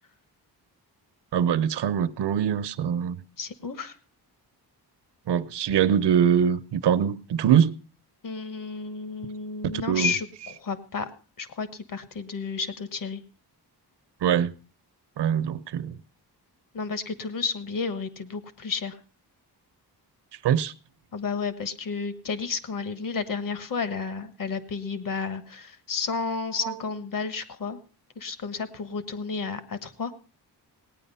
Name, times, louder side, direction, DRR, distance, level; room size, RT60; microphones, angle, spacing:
voice 1, 1.3-3.2 5.3-7.8 9.9-10.1 14.2-14.5 15.2-15.9 20.4-20.7, right 8 dB, 85° right, 0.8 m, -23 dB
voice 2, 3.4-3.9 8.2-11.1 11.4-13.2 16.7-19.0 21.1-27.8 28.2-30.1, left 5 dB, 55° left, 1.4 m, -32 dB
18.0 x 9.8 x 5.5 m
wide cardioid pair, 155°, 40 cm